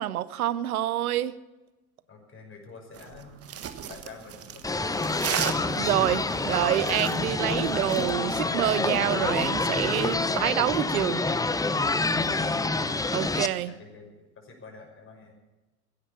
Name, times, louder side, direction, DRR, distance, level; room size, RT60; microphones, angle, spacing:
voice 1, 0.0-1.3 5.7-11.2 13.1-13.7, right 13 dB, 80° right, 18 dB, 0.8 m, -27 dB
voice 2, 2.1-3.4 3.9-5.3 12.2-12.9 13.6-15.3, left 4 dB, 30° left, 2 dB, 6.0 m, -47 dB
sound 1, 2.9-8.1, right 9 dB, 35° right, 1.4 m, -35 dB
sound 2, 4.6-13.5, left 3 dB, 10° left, 0.8 m, -27 dB
17.0 x 10.0 x 7.2 m, 1.1 s
hypercardioid pair, 85°, 42 cm